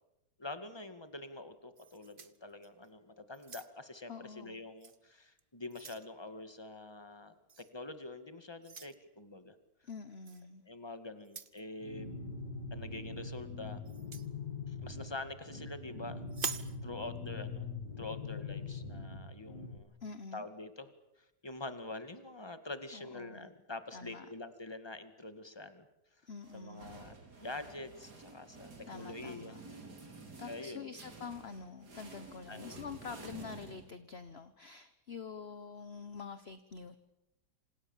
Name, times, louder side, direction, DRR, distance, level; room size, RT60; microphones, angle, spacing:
voice 1, 0.4-7.3 7.7-9.6 10.7-12.1 12.7-13.8 14.7-17.7 18.0-19.9 20.3-20.9 21.4-25.9 26.5-29.5 30.5-31.0 32.5-32.7, left 2 dB, 15° left, 10 dB, 2.0 m, -46 dB
sound 1, 1.8-2.9 3.3-4.0 4.8-5.0 5.4-6.1 7.5-7.7 8.6-9.0 10.2-10.4 11.2-11.6 13.9-14.3 16.3-16.8, right 5 dB, 35° right, 1.1 m, -44 dB
voice 2, 4.1-4.6 9.8-10.6 20.0-20.4 22.9-23.5 23.9-24.3 26.3-27.1 28.8-29.6 30.4-37.0, left 5 dB, 40° left, 11 dB, 1.3 m, -46 dB
sound 2, 11.8-19.8, left 4 dB, 85° left, 2.7 m, -43 dB
sound 3, 26.4-34.3, right 3 dB, 70° right, 4.0 m, -51 dB
27.5 x 27.0 x 7.3 m, 0.88 s
omnidirectional pair, 1.8 m